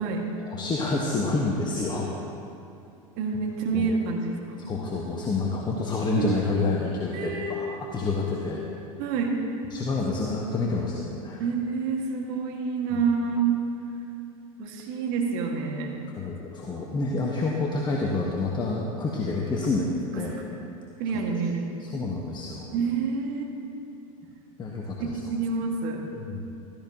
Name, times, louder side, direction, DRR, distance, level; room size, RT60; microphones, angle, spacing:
voice 1, 0.5-2.1 3.7-3.9 4.7-8.6 9.7-11.4 12.9-13.0 16.2-20.4 21.8-22.7 24.6-25.2 26.2-26.5, left 3 dB, 25° left, -2 dB, 1.4 m, -28 dB
voice 2, 3.2-4.6 6.1-6.4 7.1-7.7 9.0-9.4 11.4-13.6 14.6-16.0 21.0-21.7 22.7-23.5 25.0-26.0, right 5 dB, 55° right, 1 dB, 2.0 m, -28 dB
15.5 x 14.5 x 3.0 m, 2.8 s
hypercardioid pair, 90°, 18 cm